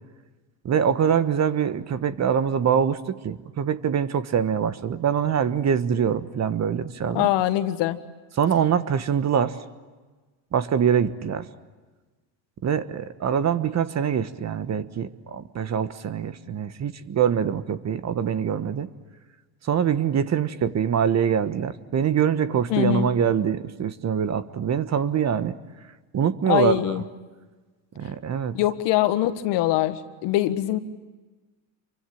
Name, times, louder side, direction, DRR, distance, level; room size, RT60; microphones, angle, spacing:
voice 1, 0.6-7.3 8.4-9.6 10.5-11.5 12.6-18.9 19.6-25.5 26.1-26.8 28.0-28.6, right 8 dB, 35° right, 12 dB, 1.3 m, -24 dB
voice 2, 7.1-8.0 22.7-23.1 26.5-27.0 28.5-30.8, left 14 dB, 60° left, 10 dB, 1.7 m, -23 dB
27.5 x 24.0 x 8.7 m, 1.3 s
hypercardioid pair, 85°, 47 cm